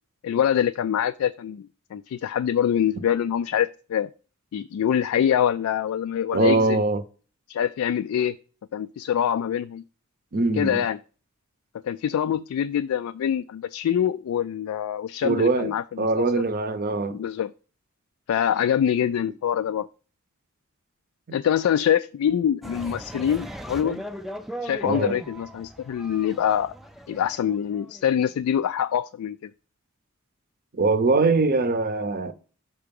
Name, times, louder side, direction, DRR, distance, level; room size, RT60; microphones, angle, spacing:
voice 1, 0.2-4.1 4.5-6.8 7.5-8.4 8.7-9.8 10.5-11.0 11.8-16.4 17.1-17.5 18.3-19.9 21.3-24.0 24.6-26.7 27.1-29.5, left 9 dB, 90° left, 0.3 m, -25 dB
voice 2, 6.3-7.0 10.3-10.8 15.2-15.7 16.0-17.2 24.8-25.2 30.7-32.3, right 3 dB, 45° right, 0.7 m, -22 dB
sound 1, 22.6-28.2, equal, ahead, 0.4 m, -38 dB
5.6 x 4.8 x 5.2 m
head